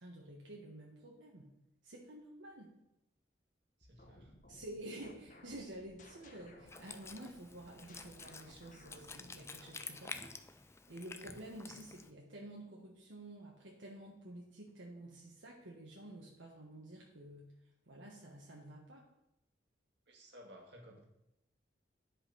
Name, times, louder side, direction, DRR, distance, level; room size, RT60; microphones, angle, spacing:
voice 1, 0.0-1.5 1.8-2.7 4.5-17.5 17.9-19.1, right 1 dB, 85° right, -2 dB, 1.4 m, -50 dB
sound 1, 3.8-10.0, left 1 dB, 45° left, 1.1 m, -61 dB
voice 2, 3.8-4.4 20.1-21.0, equal, 65° right, -1 dB, 2.1 m, -56 dB
Wind instrument woodwind instrument, 6.7-12.1, left 4 dB, 15° left, 0.4 m, -50 dB
10.5 x 5.5 x 5.5 m, 0.85 s
head